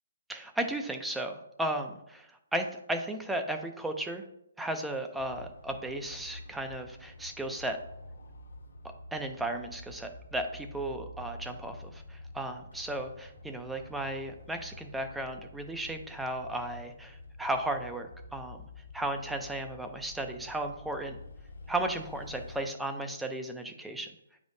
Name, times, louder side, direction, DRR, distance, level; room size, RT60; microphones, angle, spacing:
voice 1, 0.3-4.2 4.6-7.8 9.1-18.6 18.9-21.2 21.7-24.1, right 1 dB, 5° right, 5 dB, 0.4 m, -35 dB
sound 1, 5.2-22.6, left 2 dB, 80° left, 1.3 m, -48 dB
8.0 x 5.1 x 2.7 m, 0.78 s
hypercardioid pair, 175°, 0 cm